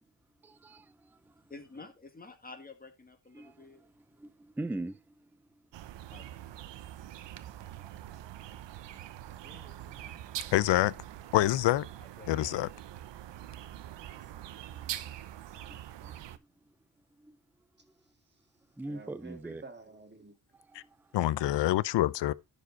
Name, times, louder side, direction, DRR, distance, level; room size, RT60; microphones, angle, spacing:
voice 1, 0.4-1.2 3.3-5.3 7.8-7.9 13.7-13.8 14.7-14.8 17.2-17.4 18.8-19.6 20.7-21.0 21.4-21.6, right 2 dB, 5° right, 0.5 m, -43 dB
voice 2, 1.5-3.9 6.1-6.4 12.0-12.6, left 3 dB, 20° left, 2.0 m, -50 dB
sound 1, 5.7-16.4, right 12 dB, 75° right, 0.8 m, -44 dB
voice 3, 9.4-10.2 14.1-14.5 18.9-20.3, right 3 dB, 25° right, 1.8 m, -51 dB
voice 4, 10.5-10.9 11.3-11.9 12.3-12.7 20.7-20.8 21.1-22.3, left 15 dB, 75° left, 0.6 m, -26 dB
11.0 x 5.1 x 4.0 m
cardioid pair, 90°, 43 cm